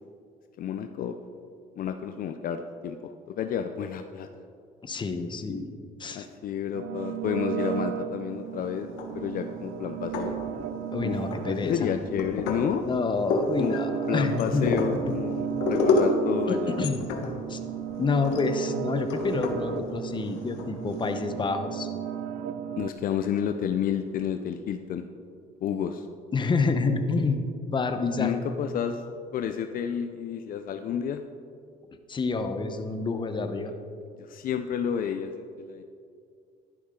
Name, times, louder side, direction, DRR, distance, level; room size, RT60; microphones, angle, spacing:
voice 1, 0.6-1.1 1.8-3.0 3.4-4.3 6.1-8.9 9.1-10.4 11.0-11.2 11.5-12.9 13.6-13.8 14.1-16.8 22.8-25.0 25.6-26.1 28.2-29.0 29.3-31.2 34.2-35.8, left 8 dB, 55° left, 7 dB, 0.6 m, -30 dB
voice 2, 4.8-5.7 6.0-6.3 10.9-11.9 12.8-14.7 15.1-15.2 16.5-17.0 17.5-17.6 18.0-21.9 26.3-27.4 27.7-28.4 32.1-33.7, left 4 dB, 30° left, 7 dB, 1.0 m, -28 dB
sound 1, 6.7-22.9, right 9 dB, 70° right, 0.6 m, -35 dB
sound 2, 8.8-9.5 9.9-10.8 11.3-21.2, left 3 dB, 90° left, 1.4 m, -31 dB
11.5 x 10.5 x 3.8 m, 2.3 s
cardioid pair, 110°, 17 cm